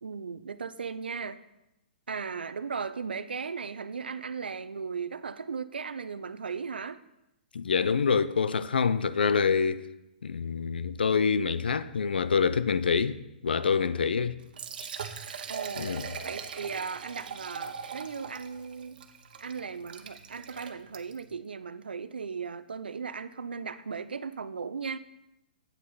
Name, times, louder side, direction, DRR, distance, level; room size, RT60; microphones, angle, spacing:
voice 1, 0.0-1.4 2.1-7.0 15.5-15.9 16.2-19.0 19.4-25.0, right 5 dB, 85° right, 0.6 m, -37 dB
voice 2, 7.5-9.8 10.2-13.2 13.4-14.4 15.8-16.1, left 5 dB, 80° left, 0.6 m, -26 dB
Liquid, 14.4-21.3, right 7 dB, 65° right, 1.2 m, -41 dB
8.6 x 8.4 x 5.6 m
hypercardioid pair, 130°, 5 cm